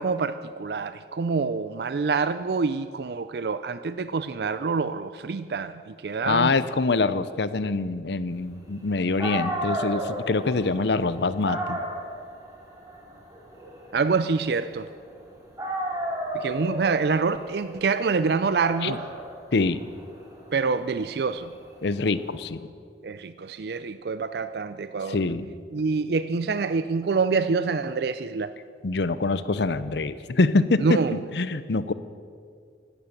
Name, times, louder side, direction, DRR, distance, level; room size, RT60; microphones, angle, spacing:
voice 1, 0.0-6.6 13.9-14.9 16.3-19.0 20.5-21.5 23.0-25.2 25.7-28.5 30.8-31.2, right 4 dB, 60° right, 13 dB, 0.4 m, -26 dB
voice 2, 6.2-11.8 18.8-19.0 19.5-19.8 21.8-22.7 25.0-25.5 28.8-31.0 31.3-31.9, left 3 dB, 70° left, 15 dB, 0.7 m, -25 dB
Dog, 8.9-9.0 9.2-15.2 15.6-22.4, right 1 dB, 20° right, 3.1 m, -34 dB
16.0 x 12.5 x 6.6 m, 2.2 s
head